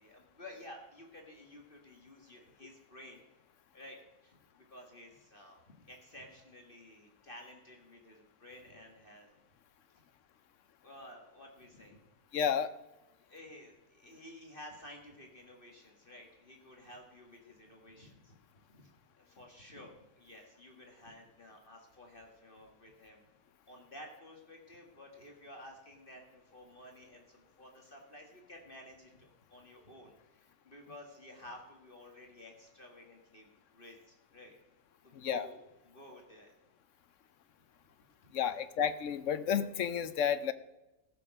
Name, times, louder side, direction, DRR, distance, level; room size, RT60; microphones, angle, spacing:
voice 1, 0.0-3.2 3.7-9.3 9.9-10.0 10.8-12.0 13.3-18.9 19.2-23.3 23.7-34.6 35.0-36.5 38.2-38.6, left 1 dB, 30° left, 1 dB, 2.0 m, -53 dB
voice 2, 12.3-12.7 35.1-35.5 38.3-40.5, left 8 dB, 65° left, 13 dB, 0.8 m, -31 dB
14.5 x 6.7 x 6.3 m, 0.98 s
omnidirectional pair, 1.8 m